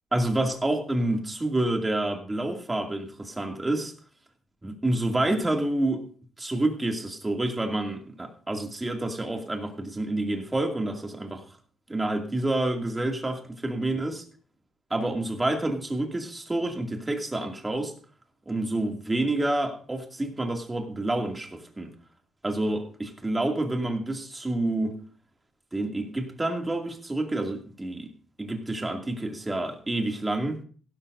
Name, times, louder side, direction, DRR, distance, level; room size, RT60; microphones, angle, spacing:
voice 1, 0.1-3.9 4.6-6.1 6.4-11.4 11.9-14.2 14.9-17.9 18.5-21.9 22.4-25.0 25.7-28.1 28.4-30.6, right 2 dB, 15° right, 3 dB, 2.4 m, -28 dB
16.5 x 12.0 x 2.7 m, 0.42 s
cardioid pair, 90°, 0 cm